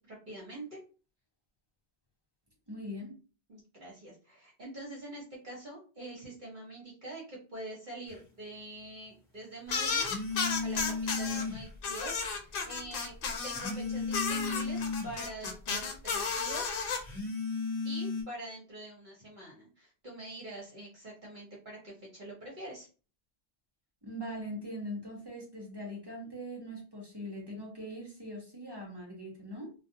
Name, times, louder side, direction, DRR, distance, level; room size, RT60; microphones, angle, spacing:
voice 1, 0.1-0.8 3.5-10.0 10.6-13.1 13.4-16.9 17.8-22.9, right 1 dB, 55° right, -4 dB, 1.0 m, -45 dB
voice 2, 2.7-3.2 24.0-29.7, equal, 25° right, -1 dB, 0.8 m, -41 dB
sound 1, 8.1-8.2 10.0-11.7 13.5-15.2 17.0-18.2, left 4 dB, 30° left, 0.9 m, -35 dB
sound 2, 9.7-11.4 11.8-13.7 14.1-17.0, left 5 dB, 65° left, 0.7 m, -33 dB
2.3 x 2.1 x 2.7 m, 0.35 s
omnidirectional pair, 1.0 m